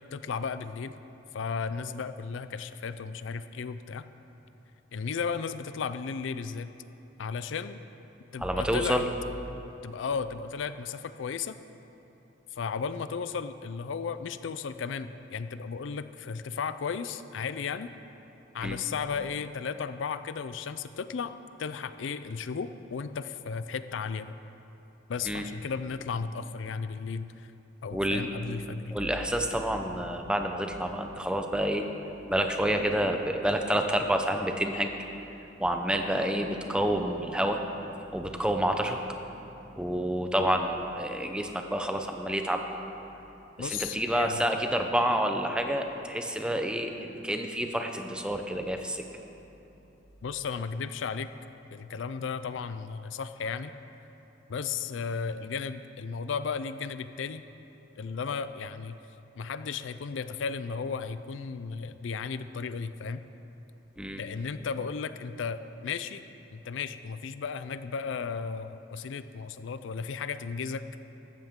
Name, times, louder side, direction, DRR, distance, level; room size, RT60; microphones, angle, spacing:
voice 1, 0.1-0.9 1.3-4.1 4.9-6.7 7.2-7.8 8.3-9.0 9.8-11.6 12.5-17.9 18.5-24.3 25.1-27.5 27.8-28.9 43.6-44.5 50.2-51.3 51.7-53.7 54.5-57.4 58.0-59.0 59.4-63.2 64.2-66.2 66.5-70.8, left 5 dB, 75° left, 12 dB, 0.4 m, -34 dB
voice 2, 8.4-9.1 18.6-18.8 25.2-25.5 27.9-28.2 28.9-31.9 32.3-34.9 35.6-37.6 38.1-39.0 39.8-42.6 43.6-49.0 64.0-64.2, right 1 dB, 5° right, 4 dB, 0.7 m, -28 dB
15.0 x 13.5 x 3.7 m, 3.0 s
head